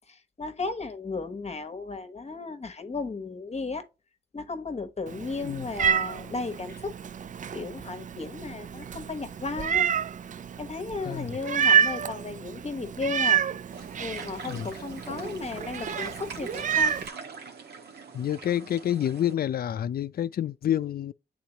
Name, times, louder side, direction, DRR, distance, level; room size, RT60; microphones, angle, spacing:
voice 1, 0.1-3.8 4.3-6.9 7.5-9.9 10.6-13.4 14.0-16.9, left 3 dB, 40° left, 1.2 m, -35 dB
Meow, 5.1-17.1, right 8 dB, 50° right, 0.4 m, -29 dB
voice 2, 11.0-11.4 14.5-14.7 18.1-21.1, left 10 dB, 65° left, 0.4 m, -28 dB
sound 1, 13.7-19.3, right 5 dB, 80° right, 1.4 m, -43 dB
8.5 x 3.9 x 2.9 m
cardioid pair, 60°, 17 cm